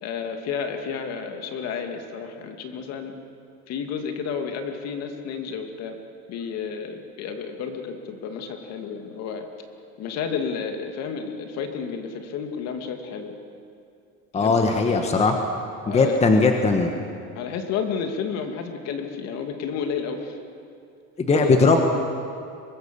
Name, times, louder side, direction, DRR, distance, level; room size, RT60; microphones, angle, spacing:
voice 1, 0.0-3.1 3.7-6.0 6.3-9.5 10.0-13.3 14.3-14.6 14.8-15.2 15.9-16.3 17.3-20.4 21.3-21.5, left 6 dB, 50° left, 5 dB, 2.6 m, -31 dB
voice 2, 14.3-15.4 15.9-16.9 21.2-21.8, left 3 dB, 20° left, 4 dB, 1.5 m, -19 dB
24.5 x 21.0 x 7.1 m, 2.5 s
cardioid pair, 145°, 32 cm